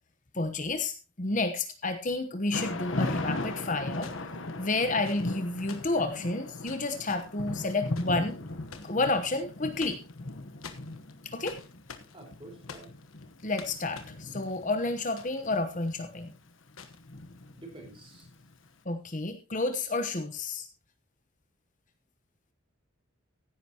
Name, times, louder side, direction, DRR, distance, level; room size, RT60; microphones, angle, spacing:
voice 1, 0.3-4.1 4.6-8.3 8.8-10.0 11.2-11.6 13.4-16.3 18.8-20.7, left 2 dB, 35° left, 8 dB, 1.0 m, -30 dB
sound 1, 2.1-2.2 3.9-9.0 9.5-10.3 10.6-15.6 15.8-15.9 16.7-17.0 18.0-18.2, left 6 dB, 85° left, 1.3 m, -49 dB
Thunder / Rain, 2.5-18.5, left 2 dB, 65° left, 1.1 m, -38 dB
voice 2, 12.1-12.9 17.5-18.3, right 2 dB, 25° right, 2 dB, 4.5 m, -48 dB
15.5 x 10.0 x 2.9 m, 0.30 s
head